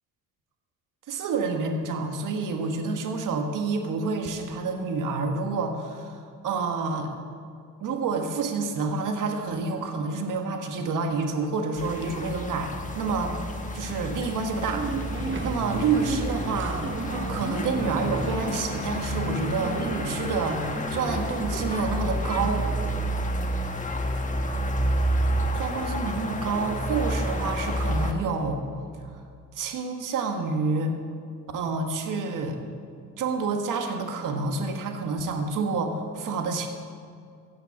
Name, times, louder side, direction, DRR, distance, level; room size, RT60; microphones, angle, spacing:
voice 1, 1.1-7.1 7.8-13.3 13.7-14.9 15.4-16.8 17.3-22.7 25.5-28.6 29.0-29.1 29.5-30.9 31.5-32.6 33.2-36.7, right 4 dB, 75° right, 4 dB, 1.5 m, -28 dB
sound 1, 11.8-28.1, equal, 25° left, 1.4 m, -29 dB
sound 2, 14.7-22.1, right 4 dB, 35° right, 1.2 m, -35 dB
16.0 x 5.8 x 7.0 m, 2.3 s
cardioid pair, 80°, 32 cm